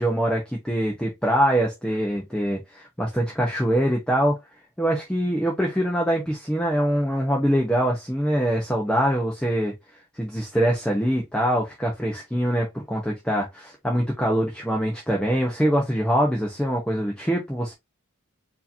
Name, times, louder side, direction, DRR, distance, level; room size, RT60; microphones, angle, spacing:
voice 1, 0.0-4.4 4.8-9.7 10.2-17.7, equal, 5° left, 0.8 m, -24 dB
4.7 x 2.9 x 2.7 m
head